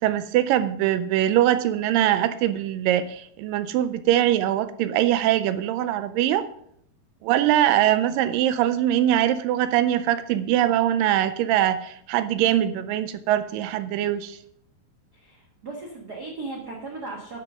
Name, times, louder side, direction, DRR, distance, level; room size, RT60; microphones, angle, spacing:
voice 1, 0.0-6.5 7.2-14.4, right 12 dB, 80° right, 12 dB, 2.1 m, -22 dB
voice 2, 15.1-17.4, right 3 dB, 50° right, -1 dB, 1.2 m, -37 dB
11.0 x 6.7 x 6.2 m, 0.70 s
omnidirectional pair, 4.3 m